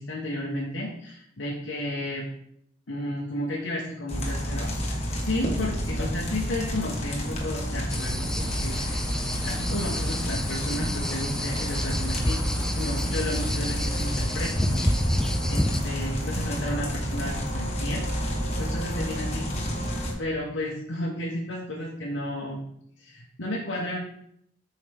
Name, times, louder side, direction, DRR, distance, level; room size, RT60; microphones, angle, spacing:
voice 1, 0.0-2.2 2.9-9.1 9.4-14.8 15.5-18.0 18.6-19.5 20.2-22.7 23.0-24.0, left 1 dB, 80° left, -4 dB, 1.5 m, -33 dB
sound 1, 4.1-20.1, equal, 35° left, 1.6 m, -30 dB
sound 2, 7.9-15.8, equal, 5° left, 0.4 m, -29 dB
8.7 x 5.5 x 3.7 m, 0.72 s
head